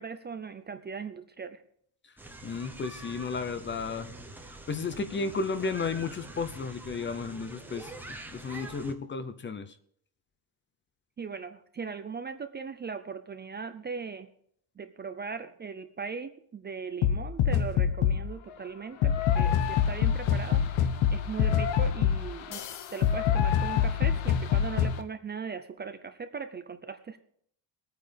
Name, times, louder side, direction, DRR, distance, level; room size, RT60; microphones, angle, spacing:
voice 1, 0.0-1.6 11.2-14.3 14.8-22.6 22.9-27.2, right 5 dB, 25° right, 9 dB, 0.5 m, -39 dB
sound 1, 2.2-8.9, right 2 dB, 5° right, 0.9 m, -45 dB
voice 2, 2.4-4.1 4.7-7.9 8.3-9.7, left 4 dB, 25° left, 12 dB, 0.6 m, -33 dB
sound 2, 17.0-18.3 19.0-25.0, left 9 dB, 90° left, 1.2 m, -25 dB
22.5 x 9.2 x 3.4 m, 0.64 s
cardioid pair, 170°, 46 cm